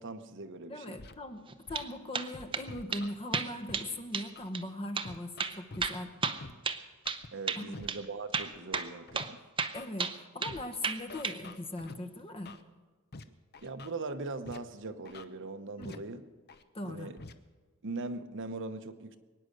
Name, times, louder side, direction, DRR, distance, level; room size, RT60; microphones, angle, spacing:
voice 1, 0.0-1.0 7.3-9.4 13.6-16.2 16.8-17.2 17.8-19.2, right 3 dB, 60° right, 9 dB, 0.9 m, -40 dB
voice 2, 0.7-6.2 7.6-7.8 9.7-12.6 15.8-16.0 16.7-17.1, left 1 dB, 25° left, 8 dB, 1.0 m, -40 dB
Scratching (performance technique), 1.0-1.1 1.7-1.8 2.3-3.1 3.7-3.8 4.3-4.5 5.0-5.9 6.4-6.5 7.0-7.3 7.7-7.9 8.4-9.2 9.7-9.9 10.4-10.6 11.1-11.9 12.4-12.6 13.1-13.2 13.5-13.9 14.4-14.6 15.0-15.2 15.8-15.9 16.5-16.6 17.2-17.3, left 3 dB, 50° left, 0.8 m, -47 dB
sound 1, 1.5-1.9 2.1-2.7 2.9-3.0 3.3-4.3 4.5-4.6 5.0-5.1 5.4-7.2 7.5-7.6 7.9-8.0 8.3-8.9 9.1-9.3 9.6-10.6 10.8-11.4, right 5 dB, 25° right, 0.7 m, -33 dB
22.0 x 9.6 x 6.5 m, 1.4 s
head